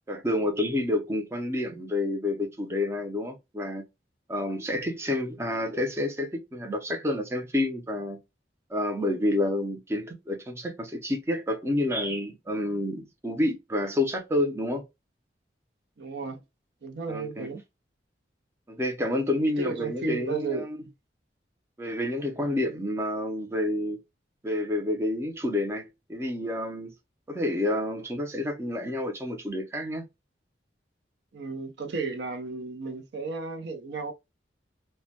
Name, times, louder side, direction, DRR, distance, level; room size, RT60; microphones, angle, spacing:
voice 1, 0.1-3.8 4.3-8.2 8.7-14.8 17.1-17.5 18.7-20.8 21.8-24.0 24.4-26.9 27.3-30.0, left 1 dB, 15° right, 0.4 m, -29 dB
voice 2, 16.0-16.4 16.8-17.6 19.6-20.9 31.3-34.1, right 4 dB, 70° right, 0.5 m, -34 dB
2.1 x 2.1 x 2.7 m
head